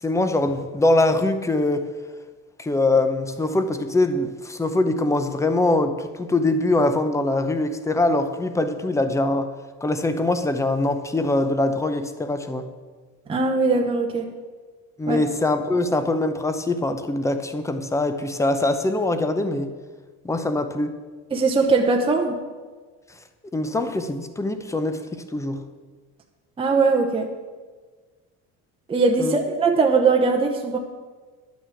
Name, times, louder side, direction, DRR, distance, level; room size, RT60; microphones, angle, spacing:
voice 1, 0.0-1.9 2.6-9.5 9.8-12.7 15.0-19.7 20.2-21.0 23.5-25.6 29.2-29.4, left 2 dB, 10° left, 9 dB, 0.7 m, -23 dB
voice 2, 13.3-14.3 15.1-15.2 21.3-22.4 26.6-27.3 28.9-30.8, right 4 dB, 15° right, 1 dB, 0.9 m, -20 dB
11.0 x 6.2 x 8.4 m, 1.4 s
cardioid pair, 150°, 34 cm